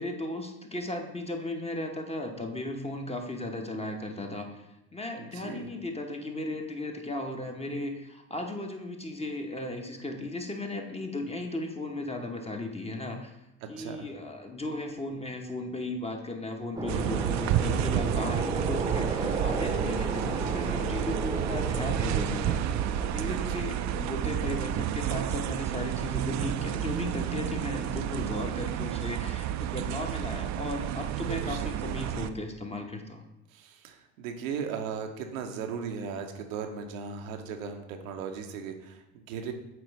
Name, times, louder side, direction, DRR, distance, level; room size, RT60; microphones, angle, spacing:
voice 1, 0.0-4.7 4.9-13.4 13.7-33.2, left 2 dB, 15° left, 3 dB, 1.0 m, -36 dB
voice 2, 5.2-5.7 13.8-14.1 23.3-23.6 31.1-31.6 31.8-32.0 33.5-39.5, right 6 dB, 80° right, 4 dB, 0.8 m, -37 dB
sound 1, 16.8-23.8, right 2 dB, 10° right, 0.8 m, -34 dB
sound 2, 16.9-32.3, right 11 dB, 45° right, 0.4 m, -31 dB
7.6 x 4.6 x 3.1 m, 0.90 s
hypercardioid pair, 60°, 40 cm